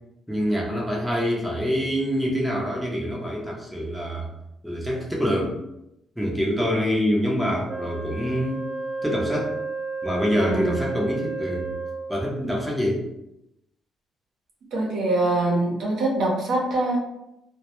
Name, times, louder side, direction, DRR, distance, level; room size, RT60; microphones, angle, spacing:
voice 1, 0.3-4.3 4.6-5.6 6.2-8.7 9.0-9.5 10.0-11.7 12.1-13.0, equal, 5° right, -3 dB, 0.6 m, -25 dB
Wind instrument woodwind instrument, 7.7-12.3, right 4 dB, 40° right, 0.9 m, -32 dB
voice 2, 14.7-17.0, right 2 dB, 75° right, -2 dB, 0.7 m, -23 dB
2.1 x 2.0 x 2.9 m, 0.86 s
cardioid pair, 90°, 0 cm